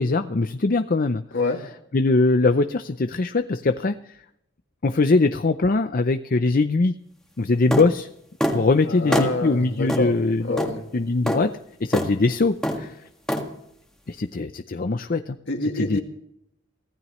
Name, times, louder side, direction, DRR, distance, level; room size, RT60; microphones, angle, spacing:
voice 1, 0.0-1.2 1.9-4.0 4.8-6.9 7.4-8.1 8.5-10.6 10.9-11.5 11.8-13.0 14.1-15.4 15.8-16.0, left 3 dB, 45° left, 9 dB, 0.6 m, -21 dB
sound 1, 7.7-7.9 8.4-8.6 9.1-9.3 9.9-10.0 10.6-10.7 11.3-11.4 11.9-12.1 12.6-12.8 13.3-13.4, equal, 5° left, 1.8 m, -23 dB
voice 2, 8.9-10.1 10.5-10.8 15.5-16.0, left 2 dB, 60° left, 3 dB, 2.2 m, -26 dB
24.5 x 15.5 x 3.2 m, 0.75 s
head